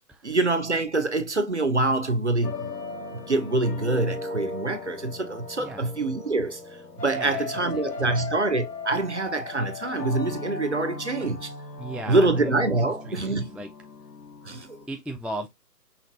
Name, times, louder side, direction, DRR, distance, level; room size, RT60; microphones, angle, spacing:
voice 1, 0.2-2.7 3.1-6.6 7.0-11.5 12.1-13.6 14.4-14.8, right 2 dB, 45° right, 0.7 m, -25 dB
sound 1, 2.4-14.9, left 2 dB, 70° left, 1.1 m, -37 dB
voice 2, 7.1-7.4 7.7-8.2 11.8-12.5 12.8-13.7 14.9-15.5, right 1 dB, 5° right, 0.3 m, -36 dB
5.7 x 2.9 x 2.4 m
figure-of-eight pair, 155°, 49 cm